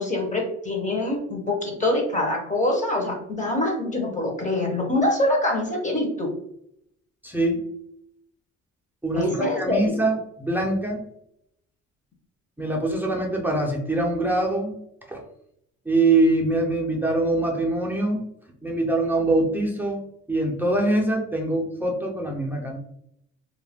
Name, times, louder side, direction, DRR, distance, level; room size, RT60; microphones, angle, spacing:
voice 1, 0.0-6.3 9.1-9.9, left 1 dB, 25° left, 1 dB, 0.8 m, -24 dB
voice 2, 7.2-7.7 9.0-11.0 12.6-14.7 15.1-15.2 15.9-18.3 18.6-20.0 20.3-22.8, right 2 dB, 5° right, -1 dB, 0.6 m, -23 dB
2.4 x 2.1 x 3.4 m, 0.73 s
cardioid pair, 90°, 30 cm